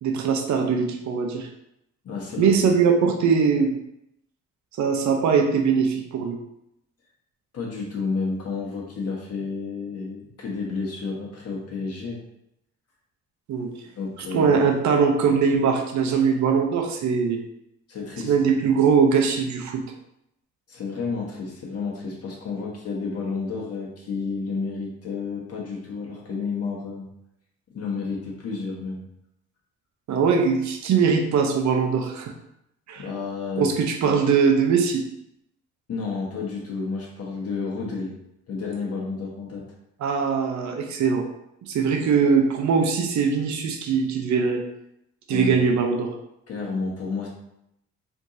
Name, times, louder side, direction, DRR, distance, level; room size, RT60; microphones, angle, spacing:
voice 1, 0.0-1.5 2.4-3.7 4.8-6.4 13.5-13.7 14.3-17.4 18.3-19.8 30.1-32.3 32.9-33.0 33.6-35.0 40.0-41.2 41.6-44.6 45.3-46.1, right 5 dB, 70° right, 4 dB, 0.8 m, -21 dB
voice 2, 2.0-2.6 7.5-12.2 14.0-14.6 17.9-18.3 20.7-27.1 27.7-29.0 33.0-33.7 35.9-38.1 38.5-39.6 45.3-45.7 46.5-47.3, left 4 dB, 55° left, -2 dB, 1.4 m, -31 dB
4.6 x 3.5 x 2.7 m, 0.80 s
cardioid pair, 90°, 30 cm